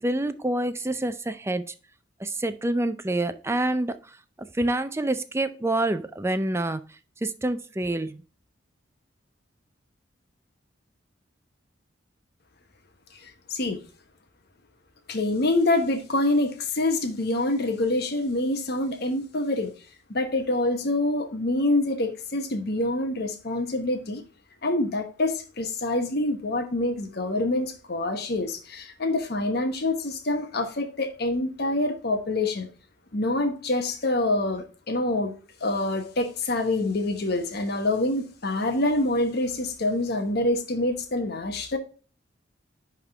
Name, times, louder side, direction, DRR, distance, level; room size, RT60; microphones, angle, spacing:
voice 1, 0.0-1.6 2.2-4.0 4.5-6.8 7.2-8.2, right 1 dB, 15° right, 11 dB, 0.5 m, -27 dB
voice 2, 13.2-13.8 15.1-19.7 20.1-24.2 24.6-32.7 33.1-35.3 35.6-41.8, left 2 dB, 60° left, 5 dB, 1.1 m, -26 dB
10.5 x 3.7 x 3.5 m, 0.37 s
head